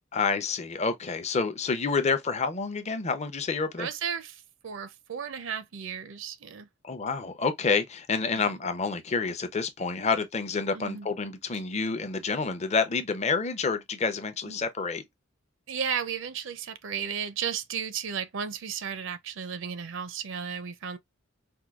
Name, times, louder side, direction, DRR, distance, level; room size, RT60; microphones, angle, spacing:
voice 1, 0.1-3.9 6.8-15.0, left 4 dB, 35° left, 0.5 m, -28 dB
voice 2, 3.8-6.7 8.4-8.6 10.7-11.1 14.5-14.6 15.7-21.0, right 7 dB, 65° right, 0.5 m, -34 dB
4.5 x 2.2 x 2.3 m
head